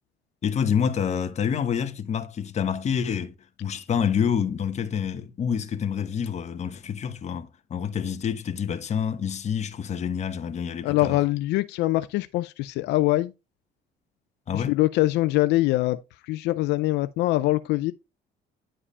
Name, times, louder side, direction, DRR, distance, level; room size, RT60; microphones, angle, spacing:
voice 1, 0.4-3.3 3.6-11.2 14.5-14.8, left 7 dB, 40° left, 1.2 m, -27 dB
voice 2, 10.8-13.3 14.5-16.0 16.3-17.9, left 17 dB, 85° left, 0.5 m, -23 dB
10.0 x 4.9 x 3.3 m
cardioid pair, 110°, 17 cm